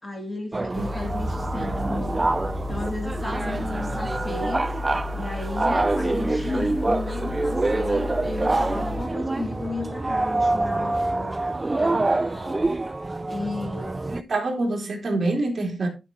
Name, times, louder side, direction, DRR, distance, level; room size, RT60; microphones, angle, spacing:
voice 1, 0.0-4.7 5.1-11.5 11.8-12.9 13.3-14.2, left 2 dB, 25° left, 2.6 m, -34 dB
sound 1, 0.5-14.2, right 2 dB, 20° right, 0.4 m, -26 dB
sound 2, 0.7-9.0, left 3 dB, 50° left, 3.0 m, -33 dB
voice 2, 14.1-15.9, right 2 dB, 50° right, 3.1 m, -25 dB
11.5 x 5.9 x 3.8 m
wide cardioid pair, 140°, 0 cm